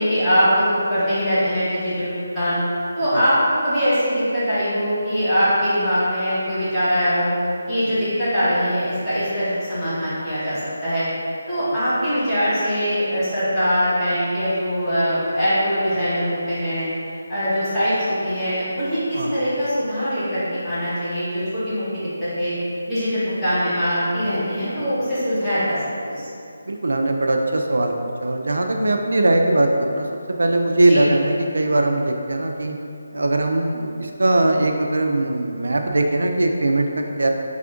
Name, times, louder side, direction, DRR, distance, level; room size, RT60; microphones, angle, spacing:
voice 1, 0.0-2.6 3.0-7.3 7.7-11.0 11.5-16.9 17.3-22.5 22.9-26.3 30.7-31.0, equal, 10° left, -16 dB, 1.2 m, -22 dB
voice 2, 26.7-27.9 28.2-30.1 30.4-32.7 33.1-36.9 37.2-37.3, right 2 dB, 80° right, 3 dB, 0.3 m, -20 dB
3.5 x 2.4 x 3.7 m, 2.6 s
figure-of-eight pair, 165°, 0 cm